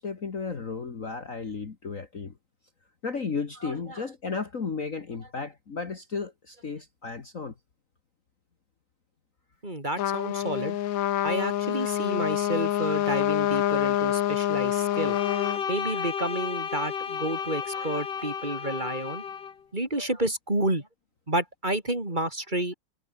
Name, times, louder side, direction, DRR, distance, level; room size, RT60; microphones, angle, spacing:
voice 1, 0.0-2.3 3.0-7.5, left 4 dB, 40° left, 2.1 m, -34 dB
voice 2, 3.6-4.0 9.6-10.8 11.2-15.2 15.7-19.2 19.7-20.9 21.3-22.7, right 1 dB, 20° right, 4.1 m, -30 dB
Trumpet, 10.0-15.6, left 12 dB, 75° left, 0.8 m, -26 dB
Bowed string instrument, 14.9-19.5, left 7 dB, 55° left, 2.4 m, -33 dB
omnidirectional pair, 2.3 m